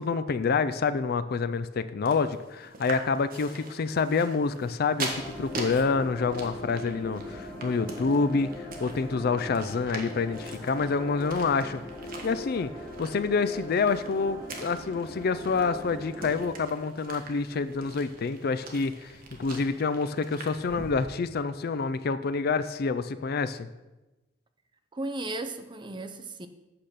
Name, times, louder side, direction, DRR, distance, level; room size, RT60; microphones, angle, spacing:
voice 1, 0.0-8.5 8.8-11.8 12.2-12.7 13.0-19.1 19.4-23.7, left 4 dB, 55° left, 0.4 m, -27 dB
sound 1, 2.1-21.1, right 3 dB, 50° right, 1.4 m, -43 dB
sound 2, 5.1-16.4, left 1 dB, 10° left, 3.5 m, -41 dB
voice 2, 24.9-26.5, right 2 dB, 25° right, 0.6 m, -35 dB
8.5 x 5.8 x 6.6 m
head